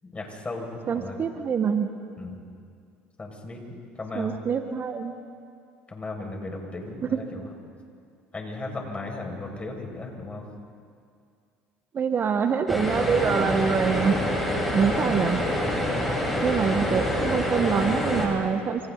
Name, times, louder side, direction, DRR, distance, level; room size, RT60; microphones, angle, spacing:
voice 1, 0.0-1.2 2.2-2.4 3.2-4.4 5.9-7.4 8.3-10.4, left 2 dB, 25° left, 1 dB, 6.0 m, -36 dB
voice 2, 0.9-1.9 4.1-5.1 7.1-7.3 11.9-14.2 14.7-15.4 16.4-18.9, right 6 dB, 40° right, 7 dB, 1.4 m, -25 dB
sound 1, 12.7-18.3, equal, ahead, 7.3 m, -26 dB
28.5 x 28.0 x 4.1 m, 2.3 s
hypercardioid pair, 70°, 5 cm